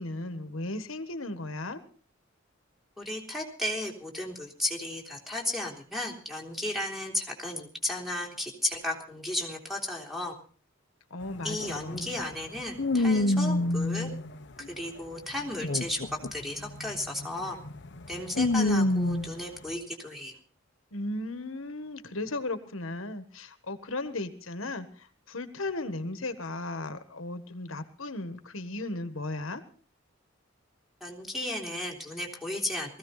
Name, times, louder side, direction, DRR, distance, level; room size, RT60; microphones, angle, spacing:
voice 1, 0.0-1.8 11.1-12.1 20.9-29.6, left 2 dB, 85° left, 10 dB, 1.6 m, -36 dB
voice 2, 3.0-10.3 11.4-14.1 14.8-17.6 18.1-20.3 31.0-33.0, left 1 dB, ahead, 1 dB, 3.5 m, -34 dB
sound 1, 11.2-11.3 11.6-14.9 15.4-19.4, left 2 dB, 60° left, 1.1 m, -28 dB
19.5 x 15.5 x 4.1 m, 0.41 s
head